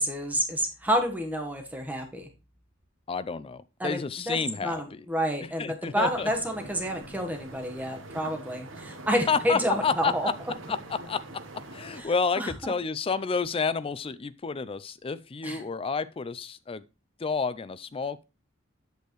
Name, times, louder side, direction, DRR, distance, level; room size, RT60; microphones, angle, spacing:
voice 1, 0.0-2.3 3.8-10.3 12.0-12.7 15.4-15.6, equal, 10° right, 1.2 m, -29 dB
voice 2, 3.1-5.0 5.6-6.3 9.3-10.3 10.7-10.8 11.0-11.2 11.7-16.8 17.2-18.2, left 5 dB, 30° left, 0.4 m, -30 dB
sound 1, 5.9-12.0, right 2 dB, 70° right, 1.2 m, -44 dB
8.1 x 6.5 x 3.1 m
head